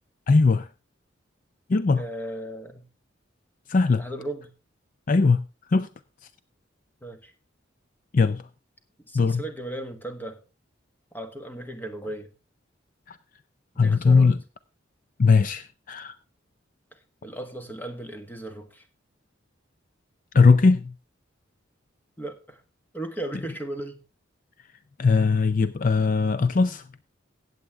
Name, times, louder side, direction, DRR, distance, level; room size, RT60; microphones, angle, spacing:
voice 1, 0.3-0.7 1.7-2.0 3.7-4.0 5.1-5.4 5.7-5.9 8.1-8.4 9.1-9.4 13.1-13.2 13.8-14.4 15.2-16.2 20.3-20.9 25.0-26.9, left 4 dB, 45° left, 0.5 m, -20 dB
voice 2, 2.0-2.9 4.0-4.5 7.0-7.3 9.1-10.4 11.1-12.3 13.7-14.3 17.2-18.8 22.2-22.6 22.9-24.0, right 1 dB, 10° left, 1.4 m, -36 dB
16.5 x 8.1 x 3.5 m
head